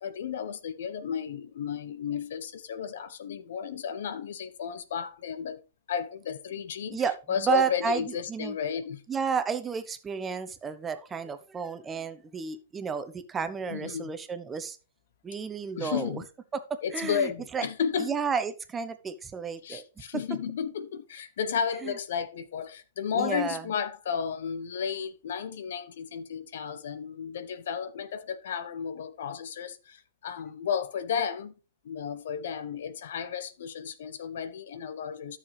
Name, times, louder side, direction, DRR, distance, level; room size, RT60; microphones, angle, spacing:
voice 1, 0.0-5.6 5.9-7.0 7.3-9.0 13.7-14.1 15.8-16.2 16.8-18.1 19.6-31.5 31.8-35.4, left 7 dB, 65° left, 12 dB, 1.0 m, -33 dB
voice 2, 6.9-8.0 8.3-8.6 9.1-14.8 15.2-16.2 16.5-17.6 18.0-19.8 21.8-21.9 23.1-23.6, right 6 dB, 20° right, 11 dB, 1.0 m, -32 dB
12.0 x 6.8 x 3.4 m, 0.32 s
hypercardioid pair, 110°, 0 cm